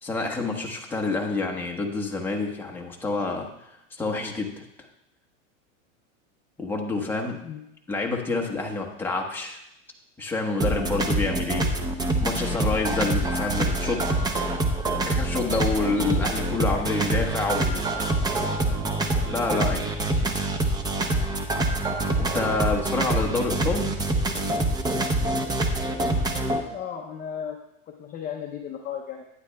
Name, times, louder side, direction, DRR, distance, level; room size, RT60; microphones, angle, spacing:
voice 1, 0.0-3.5 3.9-4.6 6.6-7.4 7.9-9.6 10.2-11.7 12.2-14.0 14.3-14.7 15.0-17.9 19.2-19.9 22.2-24.1, left 3 dB, 5° left, -1 dB, 1.1 m, -28 dB
sound 1, 10.6-26.6, right 2 dB, 10° right, 0.6 m, -25 dB
voice 2, 26.7-27.6 27.9-29.3, left 8 dB, 20° left, 2 dB, 0.7 m, -35 dB
12.0 x 9.6 x 2.3 m, 0.82 s
supercardioid pair, 135°, 38 cm